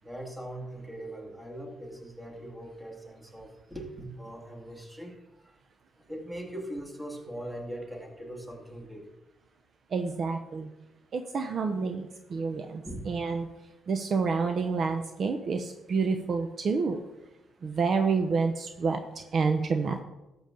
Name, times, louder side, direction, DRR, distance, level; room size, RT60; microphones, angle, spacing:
voice 1, 0.0-5.6 6.0-9.1 12.8-13.0, right 1 dB, 10° right, 1 dB, 2.2 m, -41 dB
voice 2, 9.9-10.7 11.1-13.5 13.9-17.0 17.6-19.0 19.3-20.0, right 4 dB, 50° right, 6 dB, 0.7 m, -28 dB
13.0 x 7.1 x 3.8 m, 0.99 s
cardioid pair, 90°, 0 cm